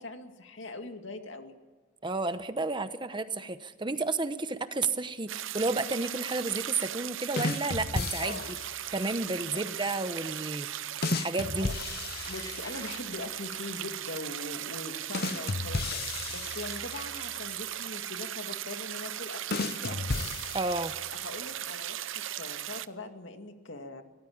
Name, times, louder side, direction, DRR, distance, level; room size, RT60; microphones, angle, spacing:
voice 1, 0.0-1.5 8.2-8.5 9.5-9.8 11.5-11.7 12.2-20.3 21.2-24.0, left 2 dB, 70° left, 6 dB, 2.3 m, -42 dB
voice 2, 2.0-8.4 8.9-10.8 11.1-11.7 20.5-20.9, right 3 dB, 25° right, 11 dB, 0.9 m, -31 dB
sound 1, 5.3-22.9, right 12 dB, 75° right, 0.7 m, -38 dB
sound 2, 7.4-8.8 11.0-13.0 15.1-17.3 19.5-21.1, left 3 dB, 50° left, 0.7 m, -34 dB
sound 3, 12.2-15.1 15.5-15.6, left 2 dB, 15° left, 3.1 m, -51 dB
22.5 x 18.5 x 8.7 m, 1.4 s
head